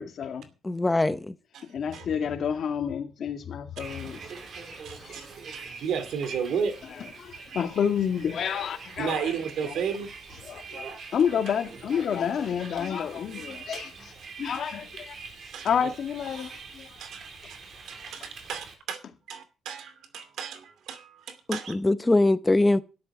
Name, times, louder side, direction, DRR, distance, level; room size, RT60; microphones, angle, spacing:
voice 1, 0.0-0.5 1.7-4.2 5.0-5.3 7.0-9.3 10.4-10.9 11.1-14.1 14.4-15.1 15.6-16.9, left 7 dB, 60° left, 2.1 m, -29 dB
voice 2, 0.6-1.3 21.5-22.8, left 2 dB, 15° left, 0.8 m, -22 dB
Bus, 3.8-18.7, right 4 dB, 60° right, 5.0 m, -44 dB
voice 3, 4.8-5.3 5.5-6.8 9.0-10.1 15.5-15.9 17.0-17.6 17.9-21.7, right 7 dB, 75° right, 2.6 m, -33 dB
13.0 x 10.5 x 4.8 m
cardioid pair, 90°, 0 cm